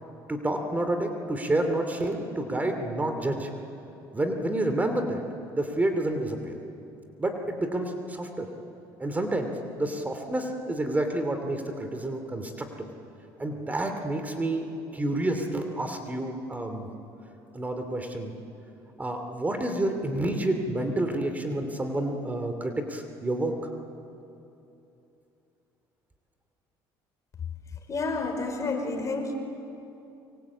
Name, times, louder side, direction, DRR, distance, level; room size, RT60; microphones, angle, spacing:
voice 1, 0.3-3.5 4.1-5.2 5.5-6.6 7.2-8.5 9.0-12.7 13.4-16.9 17.5-18.3 19.0-23.5, right 1 dB, 20° right, 6 dB, 2.8 m, -29 dB
voice 2, 27.4-29.3, left 3 dB, 35° left, 5 dB, 4.5 m, -31 dB
25.0 x 24.0 x 8.6 m, 2.8 s
cardioid pair, 105°, 9 cm